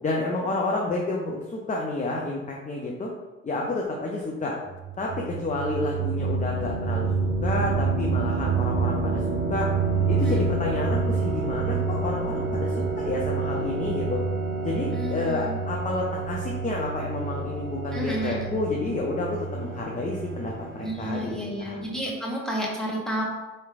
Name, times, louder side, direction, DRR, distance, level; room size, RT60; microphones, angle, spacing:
voice 1, 0.0-3.1 3.4-4.5 5.0-9.7 10.1-14.2 14.6-21.8, left 2 dB, 20° left, -1 dB, 0.6 m, -30 dB
sound 1, 4.7-21.4, right 4 dB, 30° right, 0.6 m, -28 dB
voice 2, 14.9-15.5 17.9-18.4 20.8-23.2, equal, ahead, -3 dB, 1.2 m, -31 dB
4.3 x 3.1 x 2.5 m, 1.1 s
hypercardioid pair, 55°, 42 cm